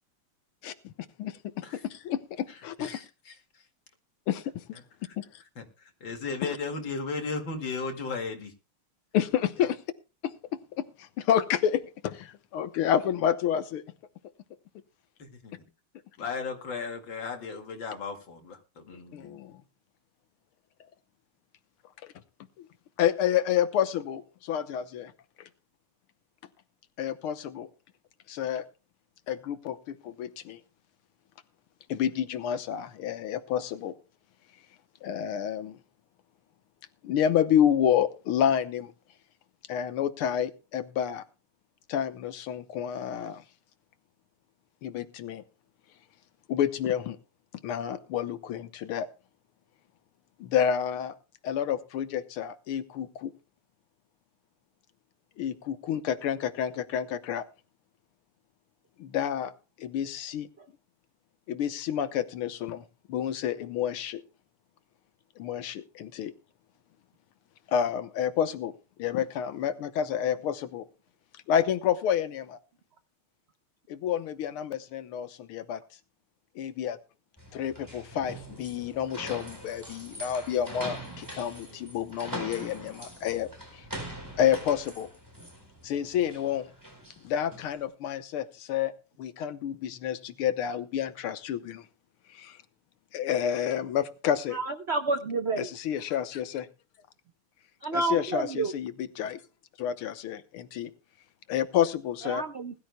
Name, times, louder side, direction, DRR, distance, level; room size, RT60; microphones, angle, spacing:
voice 1, 1.8-2.2 2.6-3.0 4.3-4.6 5.2-5.4 6.4-6.5 9.1-9.8 10.2-10.3 10.8-13.8 19.1-19.6 22.0-22.1 23.0-25.1 27.0-27.7 28.3-28.7 29.3-30.6 31.9-33.9 35.0-35.8 37.0-38.9 39.7-41.2 41.9-43.4 44.8-45.4 46.5-47.2 47.6-49.1 50.4-51.1 51.4-53.3 55.4-57.4 59.0-59.5 59.8-60.5 61.5-64.2 65.4-66.3 67.7-68.7 69.0-70.8 71.5-72.6 73.9-75.8 76.6-77.0 77.5-83.9 84.4-85.1 85.8-86.7 87.2-88.9 89.2-91.9 92.3-92.6 93.1-94.6 95.6-96.7 97.9-99.4 99.8-100.9 101.5-102.4, left 9 dB, 80° left, 11 dB, 1.8 m, -29 dB
voice 2, 2.8-3.4 5.6-5.7 6.0-8.5 15.2-15.6 16.2-19.4, left 4 dB, 60° left, 4 dB, 2.8 m, -35 dB
sound 1, 77.4-87.8, right 1 dB, 10° right, 4.1 m, -42 dB
voice 3, 94.5-95.7 97.8-98.7 102.3-102.7, right 3 dB, 55° right, 8 dB, 0.7 m, -29 dB
21.0 x 12.5 x 2.2 m, 0.30 s
omnidirectional pair, 2.4 m